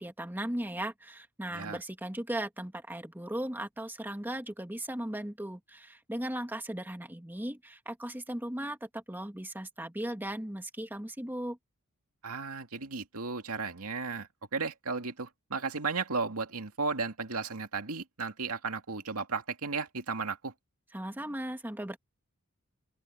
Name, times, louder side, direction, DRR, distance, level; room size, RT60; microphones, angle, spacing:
voice 1, 0.0-11.6 20.9-22.0, right 1 dB, 10° right, 1.9 m, -37 dB
voice 2, 12.2-20.5, right 4 dB, 80° right, 2.3 m, -34 dB
open air
head